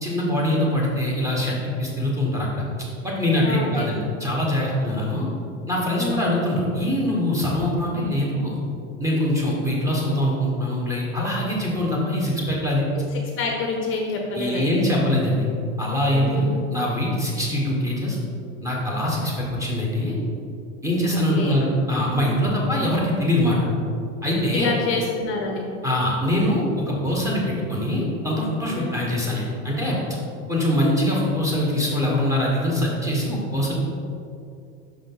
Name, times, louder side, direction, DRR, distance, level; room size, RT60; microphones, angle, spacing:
voice 1, 0.0-2.6 3.0-5.3 5.7-8.6 9.0-12.8 14.3-15.4 15.8-18.2 18.6-20.2 20.8-23.6 24.2-24.7 25.8-30.0 30.5-33.7, left 1 dB, 10° right, -4 dB, 1.2 m, -23 dB
voice 2, 3.4-3.9 5.9-6.4 13.0-14.7 16.1-16.6 21.1-21.6 22.4-22.6 24.5-25.6 28.7-29.0, left 3 dB, 35° left, 1 dB, 0.7 m, -28 dB
5.8 x 5.0 x 3.9 m, 2.5 s
supercardioid pair, 145°, 39 cm